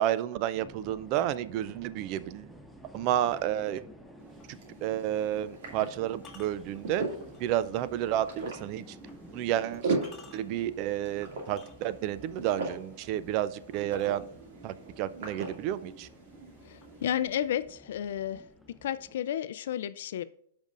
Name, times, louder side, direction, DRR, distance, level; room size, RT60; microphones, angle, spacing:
voice 1, 0.0-2.5 2.9-3.8 4.8-7.0 7.4-9.0 9.3-10.0 10.3-14.3 14.6-16.1, right 12 dB, 40° right, 0.4 m, -31 dB
sound 1, 0.5-19.1, equal, ahead, 0.7 m, -52 dB
sound 2, 4.2-17.1, right 3 dB, 70° right, 2.3 m, -40 dB
sound 3, 4.4-4.6 6.2-7.6 8.1-8.2 9.1-9.2 9.7-10.7 11.4-12.2 13.7-14.7 15.6-15.7 16.1-16.5 16.8-17.8, left 5 dB, 15° left, 1.7 m, -55 dB
voice 2, 16.6-18.4 18.8-20.2, left 10 dB, 65° left, 0.4 m, -32 dB
13.5 x 5.2 x 2.5 m
hypercardioid pair, 140°, 0 cm